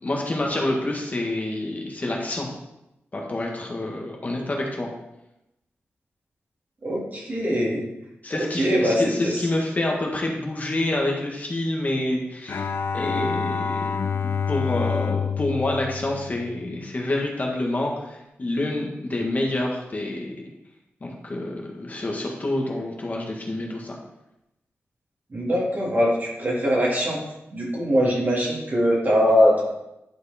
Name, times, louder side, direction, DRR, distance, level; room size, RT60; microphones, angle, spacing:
voice 1, 0.0-2.5 3.1-4.9 8.2-13.8 14.1-20.3 21.0-24.0, left 1 dB, 35° left, -1 dB, 1.5 m, -27 dB
voice 2, 6.8-7.8 8.4-9.4 25.3-27.2 27.5-29.6, equal, 40° right, -3 dB, 2.5 m, -22 dB
Bowed string instrument, 12.5-16.9, left 6 dB, 60° left, 0.4 m, -28 dB
10.5 x 4.7 x 4.3 m, 0.88 s
wide cardioid pair, 125°, 5 cm